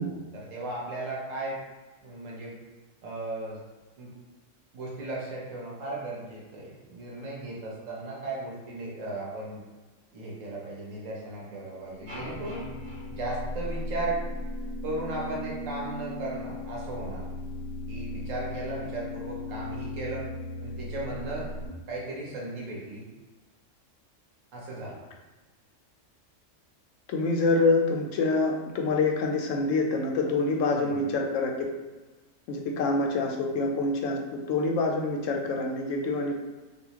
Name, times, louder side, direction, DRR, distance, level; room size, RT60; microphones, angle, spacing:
voice 1, 0.0-1.6 2.0-2.6 3.0-3.6 4.0-4.1 4.7-9.6 10.1-12.7 13.1-14.2 14.8-17.3 17.9-20.3 20.6-21.5 21.8-23.1 24.5-25.0 30.8-31.1, right 2 dB, 80° right, -4 dB, 1.3 m, -36 dB
sound 1, 11.6-21.7, left 1 dB, 55° right, 1.4 m, -37 dB
sound 2, 12.1-14.3, equal, 40° right, 1.4 m, -44 dB
voice 2, 27.1-31.7 32.5-36.4, left 3 dB, 80° left, 1 dB, 0.9 m, -26 dB
4.0 x 2.3 x 2.9 m, 1.2 s
omnidirectional pair, 1.3 m